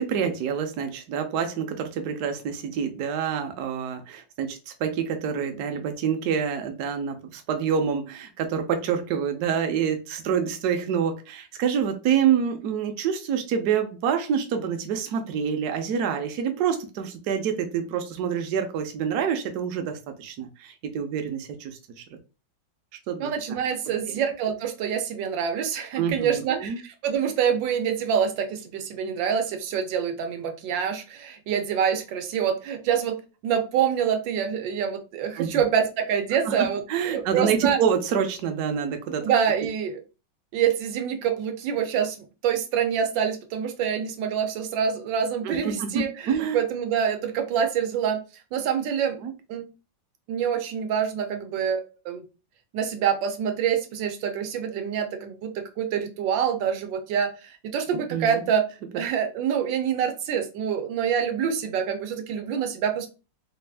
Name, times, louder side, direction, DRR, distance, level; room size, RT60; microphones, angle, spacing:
voice 1, 0.0-21.8 22.1-22.2 23.1-23.3 26.0-26.8 35.4-35.6 36.5-36.6 36.9-39.3 45.4-46.6 49.2-49.3 58.1-58.4, right 7 dB, 70° right, 5 dB, 1.1 m, -27 dB
voice 2, 23.2-33.2 33.4-37.8 39.2-40.0 40.5-42.2 42.4-48.2 48.5-49.2 49.5-49.6 50.3-52.2 52.7-58.6 58.9-63.1, right 8 dB, 90° right, 6 dB, 1.4 m, -26 dB
4.2 x 2.4 x 3.3 m, 0.32 s
omnidirectional pair, 2.0 m